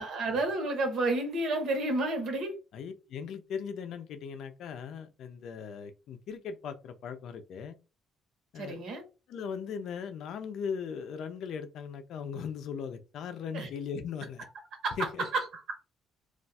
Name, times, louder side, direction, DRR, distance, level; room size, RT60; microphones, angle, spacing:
voice 1, 0.0-2.5 8.6-9.0 13.5-13.7 14.8-15.0 15.3-15.4, right 2 dB, 55° right, 1.0 m, -30 dB
voice 2, 2.7-7.8 8.5-8.8 9.3-14.5 15.0-15.3, left 6 dB, 60° left, 0.4 m, -38 dB
2.4 x 2.3 x 4.0 m
cardioid pair, 170°, 0 cm